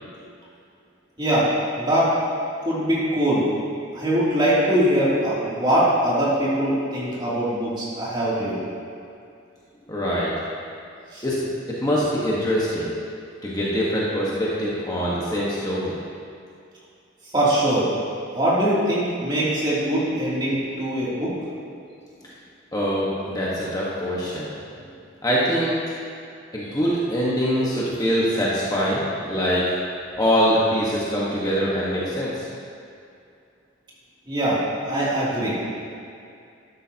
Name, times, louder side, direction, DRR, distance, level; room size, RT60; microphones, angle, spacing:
voice 1, 1.2-1.5 1.8-2.1 2.6-3.5 3.9-8.6 11.1-11.2 17.3-17.9 18.3-21.4 26.7-26.8 34.3-35.6, right 1 dB, 25° right, -8 dB, 2.9 m, -22 dB
voice 2, 9.9-10.3 11.2-11.4 11.8-12.9 13.4-16.0 22.7-24.5 25.2-25.7 26.5-29.6 30.2-32.5, equal, 20° left, -7 dB, 1.4 m, -23 dB
12.5 x 11.0 x 2.9 m, 2.4 s
head